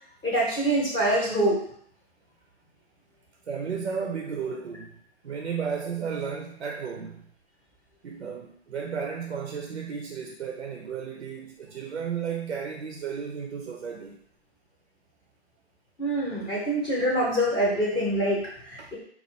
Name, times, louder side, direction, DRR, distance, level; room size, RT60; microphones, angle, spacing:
voice 1, 0.2-1.7 16.0-19.0, right 1 dB, 15° left, -4 dB, 0.7 m, -25 dB
voice 2, 3.5-5.0 5.2-7.3 8.0-14.2 18.8-18.9, right 6 dB, 85° right, 3 dB, 0.7 m, -33 dB
4.3 x 2.4 x 4.4 m, 0.63 s
hypercardioid pair, 135°, 33 cm